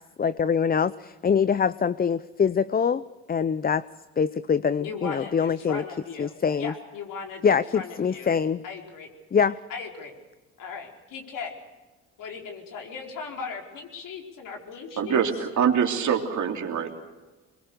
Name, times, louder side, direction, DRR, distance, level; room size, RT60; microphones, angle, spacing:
voice 1, 0.2-3.8 4.2-5.8 6.2-6.7 7.4-8.6 9.3-9.6, left 6 dB, 25° left, 16 dB, 0.6 m, -24 dB
voice 2, 4.8-8.3 8.6-9.1 9.7-10.1 10.6-11.5 12.2-15.2, left 5 dB, 65° left, 2 dB, 4.7 m, -38 dB
voice 3, 15.0-16.9, right 7 dB, 55° right, 3 dB, 3.4 m, -24 dB
23.5 x 22.0 x 6.8 m, 1.2 s
supercardioid pair, 65°, 34 cm